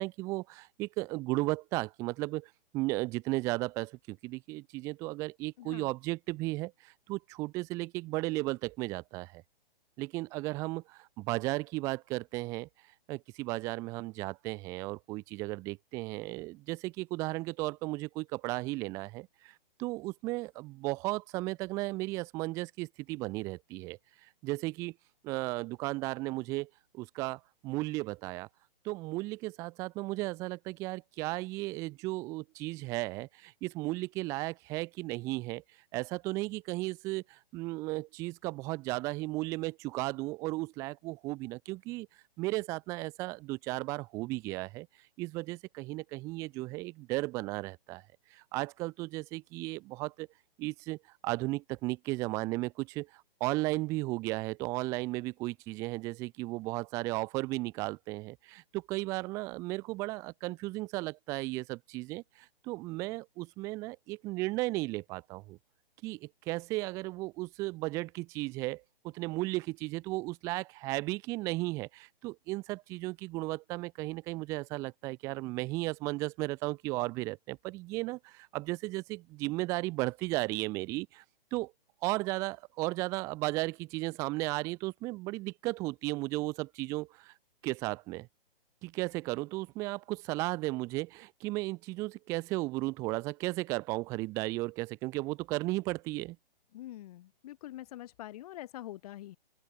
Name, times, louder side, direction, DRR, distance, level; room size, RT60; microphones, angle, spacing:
voice 1, 0.0-9.4 10.0-12.7 13.1-19.5 19.8-24.0 24.4-24.9 25.2-28.5 28.8-35.6 35.9-42.1 42.4-44.9 45.2-48.0 48.3-50.3 50.6-51.0 51.2-62.2 62.6-65.6 66.0-81.2 81.5-81.7 82.0-87.3 87.6-88.3 88.8-96.4, right 21 dB, 10° right, 0.5 m, -35 dB
voice 2, 5.6-5.9 96.7-99.4, left 14 dB, 40° left, 4.4 m, -45 dB
open air
hypercardioid pair, 150°, 30 cm